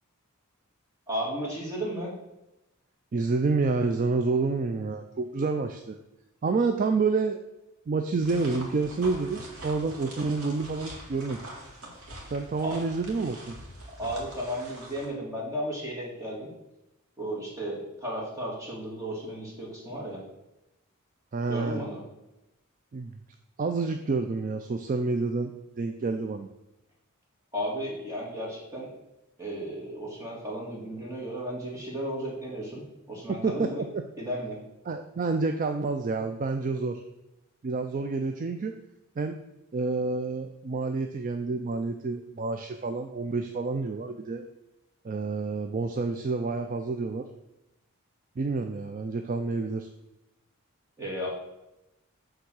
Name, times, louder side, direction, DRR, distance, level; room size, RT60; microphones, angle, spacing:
voice 1, 1.1-2.1 12.6-12.8 14.0-16.5 17.2-20.2 21.5-22.0 27.5-28.9 29.4-32.8 33.1-33.8 34.2-34.6 51.0-51.3, equal, 15° right, -4 dB, 2.2 m, -34 dB
voice 2, 3.1-6.0 6.4-7.4 7.9-11.5 12.3-13.6 21.3-21.8 22.9-23.2 23.6-25.5 25.8-26.5 33.3-34.0 34.8-37.0 37.6-38.7 39.2-39.4 39.7-44.5 45.0-47.3 48.4-49.9, right 4 dB, 35° right, 6 dB, 0.3 m, -28 dB
sound 1, 8.2-15.1, right 1 dB, 80° right, 1.9 m, -44 dB
7.0 x 3.8 x 6.2 m, 0.94 s
head